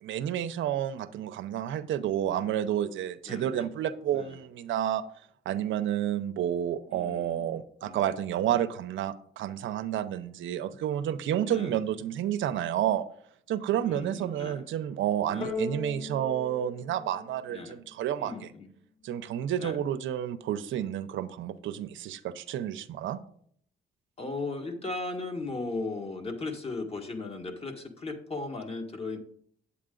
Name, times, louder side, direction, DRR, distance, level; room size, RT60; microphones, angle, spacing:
voice 1, 0.0-5.0 5.5-13.0 13.5-18.5 19.0-23.2, right 10 dB, 75° right, 10 dB, 0.6 m, -30 dB
voice 2, 3.3-3.7 4.1-4.3 6.9-7.5 7.8-8.0 11.4-11.8 13.7-14.6 15.3-15.5 17.5-17.8 18.2-18.7 19.6-19.8 24.2-29.2, left 3 dB, 30° left, 4 dB, 1.6 m, -37 dB
sound 1, 15.4-18.0, left 4 dB, 45° left, 3.1 m, -38 dB
8.5 x 8.3 x 3.8 m, 0.62 s
cardioid pair, 90°, 20 cm